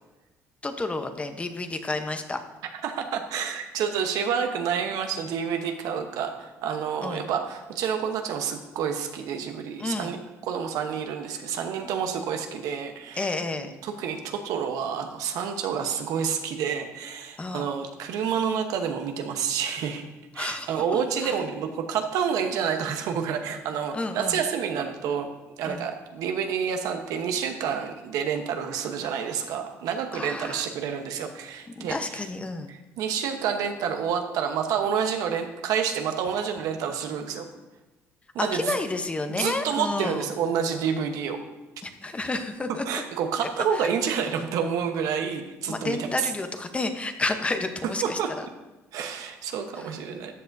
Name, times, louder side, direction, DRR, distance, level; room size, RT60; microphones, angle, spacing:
voice 1, 0.6-2.4 7.0-7.3 9.8-10.2 13.1-13.7 17.4-17.7 20.4-20.7 21.2-21.3 23.9-24.4 25.6-25.8 30.1-30.7 31.8-32.7 38.4-40.3 41.8-43.0 43.8-43.9 45.7-48.5 49.8-49.9, left 2 dB, 20° left, 7 dB, 0.9 m, -30 dB
voice 2, 2.8-10.2 10.4-13.3 13.6-20.1 20.3-25.3 25.6-32.2 32.7-37.5 38.3-38.8 39.3-41.4 42.9-46.3 48.0-48.3 48.9-50.3, right 7 dB, 75° right, 5 dB, 1.0 m, -29 dB
13.5 x 7.9 x 2.7 m, 1.1 s
cardioid pair, 90°, 6 cm